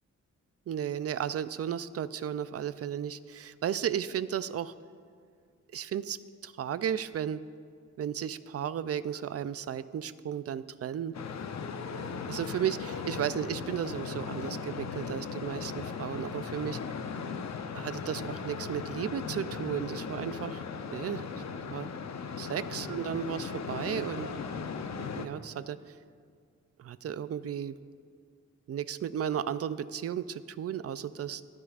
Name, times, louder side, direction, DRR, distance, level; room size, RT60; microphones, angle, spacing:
voice 1, 0.7-4.7 5.7-6.2 6.4-7.4 8.0-11.1 12.3-16.8 17.7-20.6 20.9-21.3 21.6-21.9 22.4-24.3 25.0-25.8 26.8-27.7 28.7-31.4, right 9 dB, 55° right, 15 dB, 0.4 m, -34 dB
sound 1, 11.1-25.3, left 5 dB, 65° left, 0.7 m, -37 dB
25.5 x 8.5 x 2.5 m, 2.1 s
wide cardioid pair, 115°, 29 cm